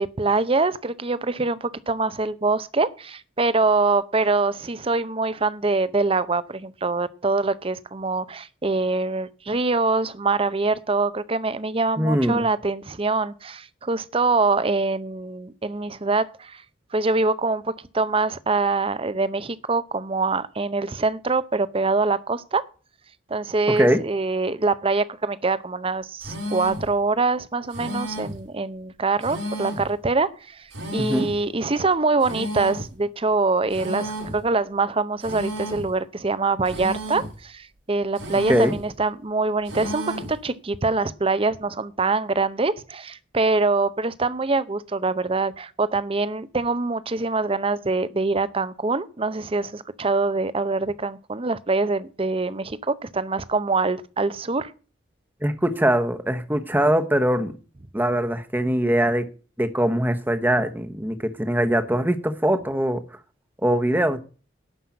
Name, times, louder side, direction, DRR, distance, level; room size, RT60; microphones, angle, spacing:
voice 1, 0.0-16.6 16.9-22.6 23.3-54.7, right 3 dB, 30° right, 0.7 m, -24 dB
voice 2, 12.0-12.4 23.7-24.0 31.0-31.3 38.5-38.7 55.4-57.5 57.9-59.2 59.6-63.0 63.6-64.2, equal, 10° right, 1.1 m, -22 dB
sound 1, 26.2-26.9 27.7-28.4 29.2-29.9 30.7-31.4 32.2-32.9 33.7-34.4 35.2-35.9 36.7-37.4 38.2-38.9 39.7-40.4, equal, 85° right, 5.2 m, -32 dB
11.5 x 5.6 x 8.6 m
head